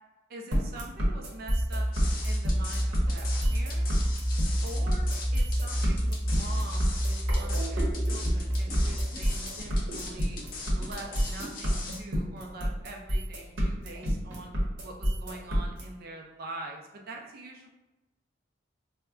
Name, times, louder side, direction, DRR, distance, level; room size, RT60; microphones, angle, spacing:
voice 1, 0.3-1.9 2.2-3.9 4.6-10.4 10.7-14.5 14.8-17.7, right 2 dB, 50° right, 1 dB, 0.4 m, -44 dB
sound 1, 0.5-15.8, equal, 75° right, 0.9 m, -29 dB
sound 2, 1.5-9.0, equal, 5° right, 0.6 m, -29 dB
sound 3, 1.9-12.0, left 3 dB, 45° left, 0.5 m, -41 dB
2.2 x 2.1 x 3.6 m, 1.0 s
head